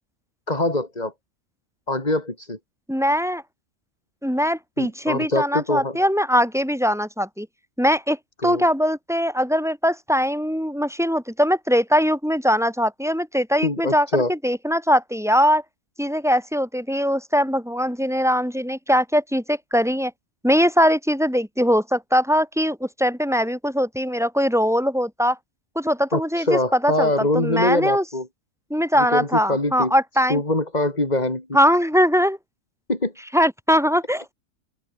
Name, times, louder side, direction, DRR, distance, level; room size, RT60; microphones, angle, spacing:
voice 1, 0.5-1.1 1.9-2.6 4.8-6.0 8.4-8.7 13.6-14.3 26.1-28.3 29.0-29.9 30.3-31.5 32.9-33.1, left 2 dB, 30° left, 4.2 m, -23 dB
voice 2, 2.9-3.4 4.2-7.5 7.8-8.2 8.4-15.6 16.0-20.1 20.4-25.4 25.7-27.1 27.3-28.0 28.7-30.4 31.5-32.4 33.3-34.2, equal, ahead, 5.0 m, -21 dB
open air
omnidirectional pair, 1.4 m